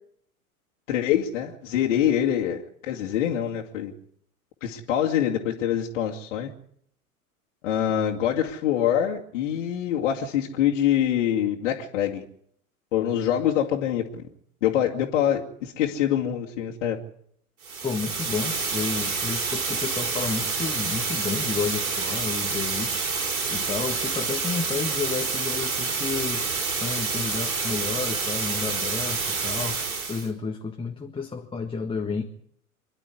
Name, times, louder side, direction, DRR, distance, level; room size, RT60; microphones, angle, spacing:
voice 1, 0.9-3.9 4.6-6.5 7.6-12.2 12.9-14.0 14.6-17.0, left 10 dB, 55° left, -2 dB, 2.4 m, -25 dB
sound 1, 17.6-30.3, right 4 dB, 75° right, 4.7 m, -28 dB
voice 2, 17.8-23.1 23.5-32.2, left 5 dB, 10° left, 3 dB, 1.6 m, -31 dB
25.5 x 11.5 x 9.6 m, 0.68 s
figure-of-eight pair, 90°, 43 cm